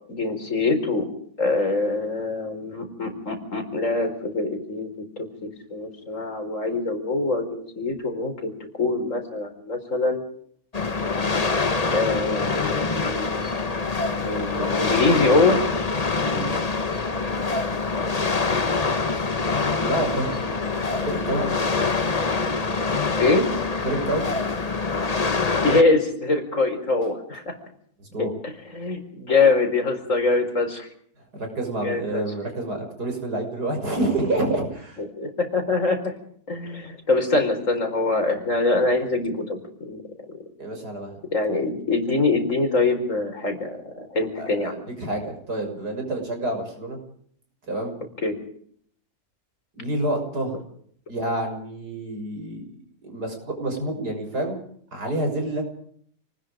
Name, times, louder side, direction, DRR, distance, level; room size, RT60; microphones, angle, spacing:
voice 1, 0.1-1.1 1.4-4.9 5.2-8.5 8.8-10.2 11.9-13.5 14.2-15.6 20.5-20.6 21.0-21.1 23.2-23.5 25.6-27.5 28.2-28.3 28.7-30.9 31.8-32.2 35.0-36.1 36.5-40.0 41.3-44.8 48.2-48.4, left 3 dB, 50° left, 6 dB, 4.9 m, -24 dB
sound 1, 10.7-25.8, left 4 dB, 25° left, 1.2 m, -25 dB
voice 2, 16.1-16.6 19.1-19.3 19.8-20.3 20.9-21.4 23.8-24.3 28.0-28.3 31.3-35.0 40.6-41.2 44.4-47.0 47.7-47.9 49.7-50.6 51.1-52.7 53.0-54.6 54.9-55.6, right 1 dB, 85° right, 3 dB, 7.0 m, -28 dB
28.5 x 20.0 x 5.1 m, 0.62 s
omnidirectional pair, 1.7 m